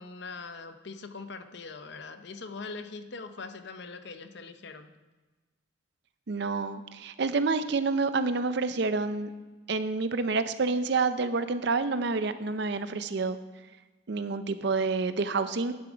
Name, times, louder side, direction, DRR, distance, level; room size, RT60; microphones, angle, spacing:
voice 1, 0.0-5.0, left 4 dB, 55° left, 9 dB, 0.7 m, -42 dB
voice 2, 6.3-9.3 9.7-13.4 14.1-15.7, right 4 dB, 55° right, 12 dB, 0.5 m, -28 dB
9.8 x 7.2 x 5.0 m, 1.2 s
head